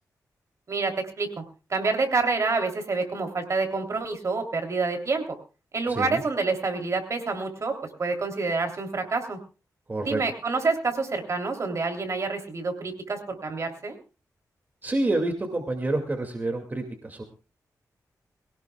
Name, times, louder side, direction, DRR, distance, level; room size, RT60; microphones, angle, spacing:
voice 1, 0.7-1.4 1.7-5.2 5.7-9.4 10.0-14.0, right 3 dB, 50° right, 4 dB, 3.3 m, -27 dB
voice 2, 5.9-6.2 9.9-10.2 14.8-17.2, right 2 dB, 30° right, 4 dB, 2.3 m, -28 dB
22.5 x 17.5 x 2.4 m, 0.34 s
wide cardioid pair, 110°, 7 cm